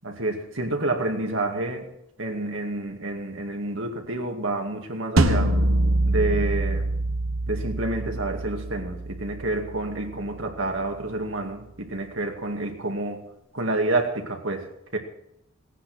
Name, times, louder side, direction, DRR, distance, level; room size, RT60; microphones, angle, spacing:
voice 1, 0.0-1.9 2.2-5.6 6.0-6.9 7.5-13.2 13.5-14.7 14.9-15.0, right 2 dB, 70° right, 3 dB, 2.3 m, -28 dB
sound 1, 5.2-10.2, right 1 dB, 90° right, 1.2 m, -25 dB
17.0 x 9.8 x 6.2 m, 0.81 s
head